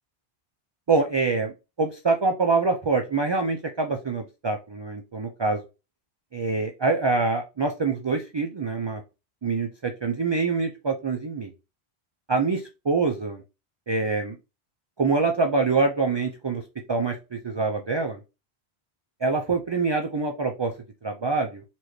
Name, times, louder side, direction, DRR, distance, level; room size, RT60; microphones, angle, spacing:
voice 1, 0.9-5.6 6.3-9.0 9.4-11.5 12.3-12.6 12.9-13.4 13.9-14.4 15.0-16.6 16.9-18.2 19.2-20.7 21.0-21.6, right 4 dB, 45° right, 4 dB, 0.3 m, -25 dB
4.2 x 3.2 x 3.0 m, 0.28 s
omnidirectional pair, 1.1 m